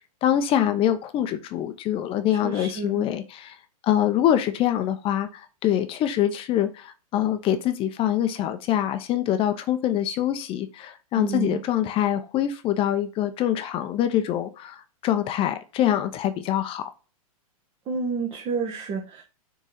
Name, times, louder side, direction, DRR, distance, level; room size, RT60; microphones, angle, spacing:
voice 1, 0.2-3.6 3.8-16.9, left 11 dB, 30° left, 0.7 m, -24 dB
voice 2, 2.4-3.1 11.1-11.6 17.9-19.2, right 5 dB, 30° right, 1.2 m, -30 dB
6.2 x 4.0 x 4.1 m
hypercardioid pair, 125°, 19 cm